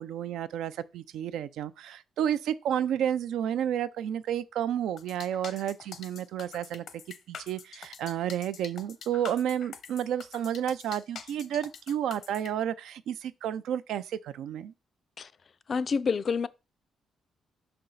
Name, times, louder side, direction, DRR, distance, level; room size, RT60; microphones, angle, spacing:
voice 1, 0.0-6.8 7.3-14.7, right 10 dB, 90° right, 0.4 m, -31 dB
sound 1, 5.0-12.5, left 7 dB, 70° left, 0.8 m, -45 dB
voice 2, 15.7-16.5, left 5 dB, 45° left, 0.4 m, -28 dB
5.6 x 4.4 x 3.9 m
cardioid pair, 100°, 0 cm